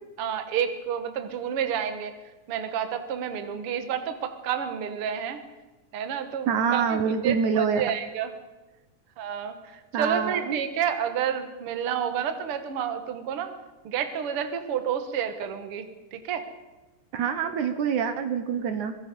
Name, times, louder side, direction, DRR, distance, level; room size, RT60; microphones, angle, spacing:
voice 1, 0.2-2.1 2.5-5.4 5.9-8.3 9.2-13.5 13.8-16.5, right 8 dB, 50° right, 8 dB, 2.1 m, -30 dB
voice 2, 6.5-7.8 9.9-10.6 17.1-19.0, right 6 dB, 70° right, 9 dB, 2.5 m, -26 dB
23.5 x 20.0 x 5.5 m, 1.1 s
omnidirectional pair, 3.7 m